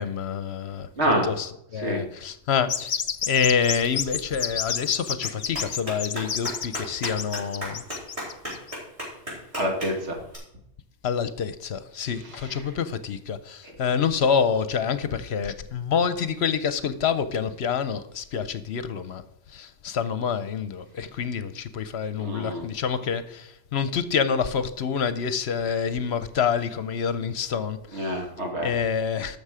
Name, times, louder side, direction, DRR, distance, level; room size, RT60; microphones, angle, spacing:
voice 1, 0.0-0.9 1.2-1.5 1.7-2.9 3.3-7.8 11.0-19.2 19.5-28.1 28.6-29.4, left 7 dB, 65° left, 12 dB, 0.9 m, -27 dB
voice 2, 1.0-1.3 1.7-2.0 9.5-10.2 12.2-12.7 22.2-22.7 27.9-28.7, equal, 70° right, 1 dB, 2.3 m, -27 dB
sound 1, 2.7-8.7, left 7 dB, 45° left, 0.6 m, -30 dB
Clapping, 3.7-10.4, equal, 30° right, 4.8 m, -38 dB
12.0 x 6.9 x 4.9 m, 0.79 s
omnidirectional pair, 1.2 m